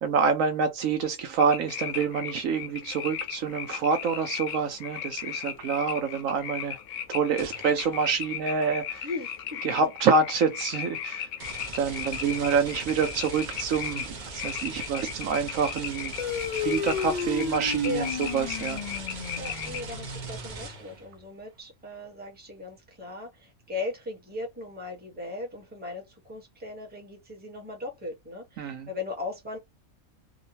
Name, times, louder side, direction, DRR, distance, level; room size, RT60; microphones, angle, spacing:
voice 1, 0.0-6.8 7.1-9.1 9.6-11.3 11.7-16.1 16.5-18.8 28.6-28.9, right 5 dB, 75° right, 1.0 m, -27 dB
sound 1, 1.4-19.9, left 9 dB, 70° left, 0.9 m, -37 dB
sound 2, 7.4-8.3 11.4-21.1, right 3 dB, 45° right, 0.6 m, -41 dB
voice 2, 9.0-9.6 17.8-18.1 19.4-29.6, left 2 dB, 10° right, 0.9 m, -37 dB
sound 3, 16.2-21.1, left 6 dB, 55° left, 0.5 m, -33 dB
2.9 x 2.2 x 2.7 m
omnidirectional pair, 1.5 m